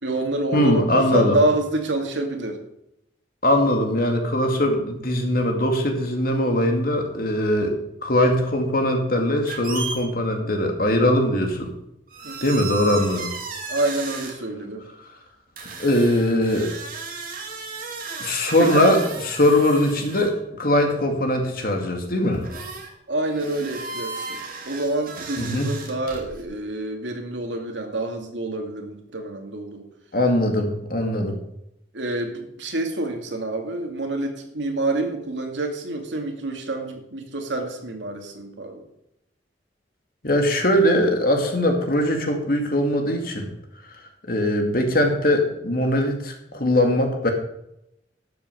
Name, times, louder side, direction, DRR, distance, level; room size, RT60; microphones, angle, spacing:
voice 1, 0.0-2.6 7.6-7.9 10.3-10.5 12.2-12.5 13.7-14.9 18.6-19.0 23.1-29.9 31.9-38.8, right 2 dB, 85° right, 3 dB, 2.4 m, -27 dB
voice 2, 0.5-1.4 3.4-7.7 8.0-11.7 12.4-13.3 15.8-16.7 18.2-19.0 19.4-22.4 25.4-25.7 30.1-31.4 40.2-43.5 44.3-47.3, left 1 dB, 50° left, 3 dB, 2.3 m, -21 dB
sound 1, 9.5-10.0 11.5-11.7 12.1-14.3 15.6-20.4 21.6-21.7 22.3-22.9 23.2-26.4, right 4 dB, 50° right, 2.6 m, -35 dB
12.0 x 7.5 x 6.9 m, 0.81 s
head